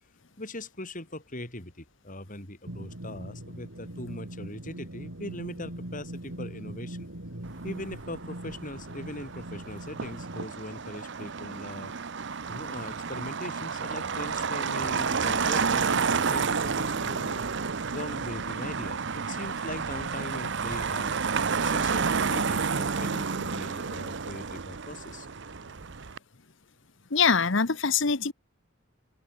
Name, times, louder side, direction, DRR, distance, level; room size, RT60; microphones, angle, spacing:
voice 1, 0.4-7.1 7.6-11.9 12.5-17.5 17.9-21.1 21.6-25.3, left 1 dB, 40° left, 7.7 m, -40 dB
sound 1, 2.7-10.5, right 1 dB, 85° right, 3.4 m, -41 dB
Motor vehicle (road), 7.4-26.2, right 5 dB, 60° right, 0.9 m, -30 dB
voice 2, 27.1-28.3, left 5 dB, 65° left, 1.2 m, -23 dB
open air
head